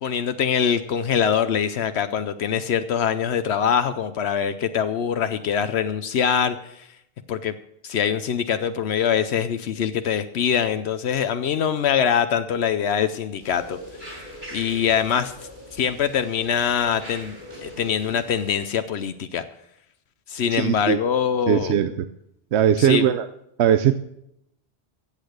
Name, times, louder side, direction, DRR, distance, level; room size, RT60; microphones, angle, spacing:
voice 1, 0.0-6.9 7.3-7.5 7.8-13.8 14.5-15.3 15.7-17.4 17.6-19.4 20.3-21.7 22.8-23.1, left 8 dB, 80° left, 10 dB, 1.0 m, -23 dB
sound 1, 13.4-18.7, equal, 45° right, 5.4 m, -41 dB
voice 2, 20.5-21.0 21.5-21.9 22.5-23.3 23.6-23.9, right 10 dB, 85° right, 12 dB, 0.9 m, -19 dB
15.0 x 8.4 x 6.5 m, 0.76 s
omnidirectional pair, 1.1 m